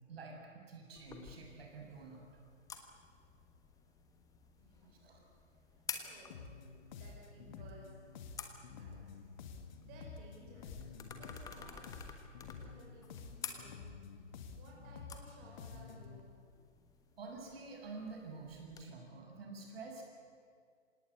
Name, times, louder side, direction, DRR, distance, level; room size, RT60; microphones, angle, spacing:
voice 1, 0.1-2.2 5.0-5.2 17.2-20.0, right 3 dB, 55° right, 1 dB, 6.5 m, -48 dB
sound 1, 1.0-18.8, left 6 dB, 10° left, 1.3 m, -52 dB
voice 2, 4.6-5.2 6.0-6.5 6.9-7.9 8.7-9.2 9.8-10.8 11.1-11.8 12.4-13.8 14.6-16.3, right 2 dB, 25° right, -3 dB, 5.4 m, -58 dB
sound 2, 6.3-16.2, left 5 dB, 35° left, 2.0 m, -50 dB
26.5 x 18.5 x 8.4 m, 2.1 s
figure-of-eight pair, 130°, 37 cm